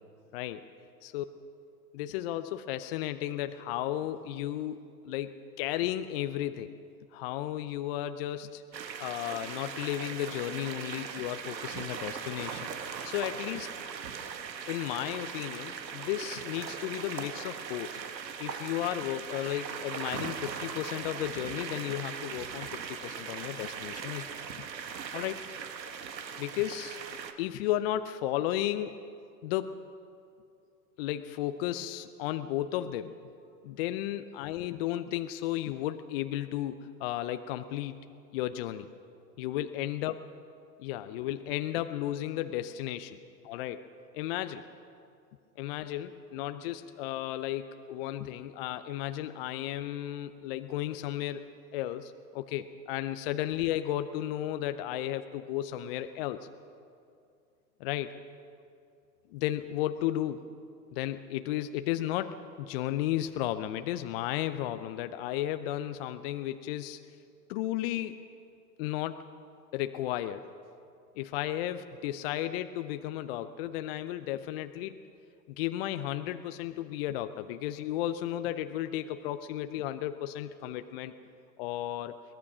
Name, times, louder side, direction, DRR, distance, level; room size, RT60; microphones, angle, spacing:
voice 1, 0.3-0.6 1.0-1.2 1.9-6.7 7.1-8.6 9.0-13.7 14.7-18.0 18.4-24.3 25.1-25.4 26.4-27.0 27.4-28.9 29.4-29.8 31.0-33.1 33.6-38.0 38.3-38.9 39.4-40.1 40.8-43.2 43.4-43.8 44.1-44.6 45.6-51.4 51.7-56.5 57.8-58.2 59.3-60.5 60.9-67.0 67.5-68.2 68.8-69.2 69.7-70.5 71.2-75.0 75.6-81.1 81.6-82.2, left 13 dB, 35° left, 10 dB, 0.7 m, -34 dB
sound 1, 8.7-27.3, right 6 dB, 80° right, 1.7 m, -39 dB
23.0 x 18.5 x 6.2 m, 2.5 s
hypercardioid pair, 125°, 50 cm